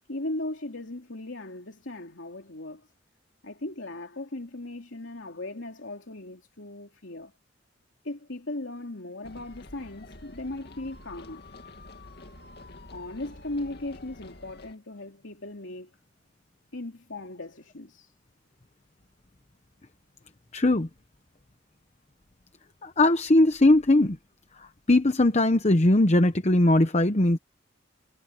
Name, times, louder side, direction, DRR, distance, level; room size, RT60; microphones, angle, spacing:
voice 1, 0.1-2.9 3.4-7.3 8.0-11.4 12.9-16.0 16.7-18.1, left 2 dB, 75° left, 2.8 m, -37 dB
sound 1, 9.2-14.7, left 2 dB, 55° left, 2.4 m, -47 dB
voice 2, 20.5-20.9 22.8-24.2 24.6-27.4, left 1 dB, 35° left, 0.9 m, -20 dB
head